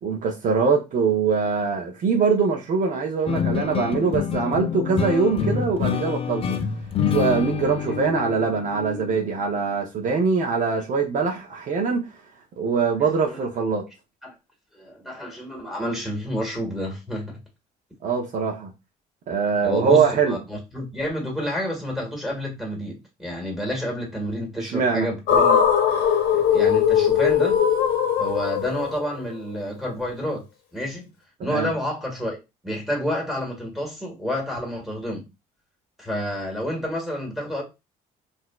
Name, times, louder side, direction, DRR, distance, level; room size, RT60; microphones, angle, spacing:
voice 1, 0.0-6.6 7.1-12.1 12.6-13.9 18.0-18.7 19.3-20.4 24.6-25.1 31.4-31.7, right 5 dB, 50° right, 0.7 m, -23 dB
sound 1, 3.3-9.9, left 7 dB, 35° left, 0.4 m, -27 dB
voice 2, 7.6-7.9 13.0-13.4 14.2-14.3 14.7-17.4 19.6-25.6 26.3-27.6 28.2-30.4 30.7-31.1 31.4-32.4 32.6-35.2 36.0-37.6, equal, ahead, 1.6 m, -29 dB
sound 2, 25.3-29.5, left 8 dB, 80° left, 0.9 m, -20 dB
4.0 x 2.6 x 2.2 m
cardioid pair, 110°, 17 cm